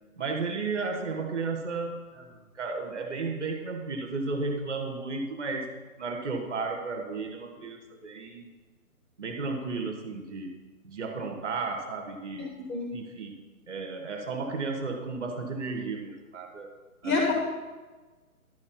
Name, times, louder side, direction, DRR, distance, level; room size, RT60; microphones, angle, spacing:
voice 1, 0.2-5.7 6.0-8.5 9.2-10.6 10.8-12.5 12.9-16.7 17.0-17.3, right 4 dB, 5° left, 3 dB, 0.7 m, -34 dB
voice 2, 12.4-12.9 17.0-17.3, left 3 dB, 30° left, -1 dB, 1.7 m, -28 dB
11.5 x 4.3 x 7.4 m, 1.3 s
hypercardioid pair, 170°, 44 cm